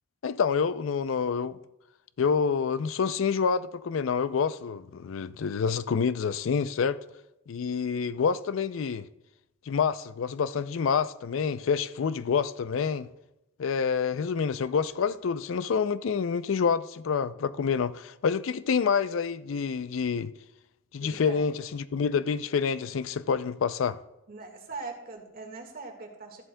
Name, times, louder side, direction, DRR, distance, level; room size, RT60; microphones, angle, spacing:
voice 1, 0.2-1.6 2.2-7.0 7.5-9.1 9.7-13.1 13.6-20.3 20.9-24.0, left 6 dB, 75° left, 0.4 m, -27 dB
voice 2, 21.0-21.5 24.3-26.4, right 3 dB, 50° right, 1.7 m, -41 dB
14.0 x 11.0 x 2.2 m
head